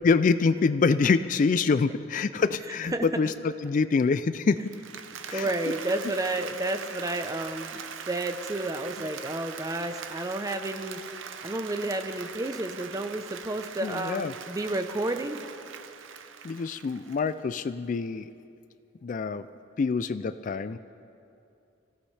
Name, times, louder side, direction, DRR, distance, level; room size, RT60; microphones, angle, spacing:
voice 1, 0.0-4.7 5.3-5.5 13.8-14.3 16.4-18.3 19.0-19.5 19.8-20.8, left 4 dB, 40° left, 13 dB, 0.3 m, -25 dB
Applause, 4.6-17.6, right 7 dB, 75° right, 0.7 m, -41 dB
voice 2, 5.3-11.0 11.4-15.4, right 2 dB, 20° right, 7 dB, 0.7 m, -31 dB
25.0 x 16.0 x 3.3 m, 2.6 s
head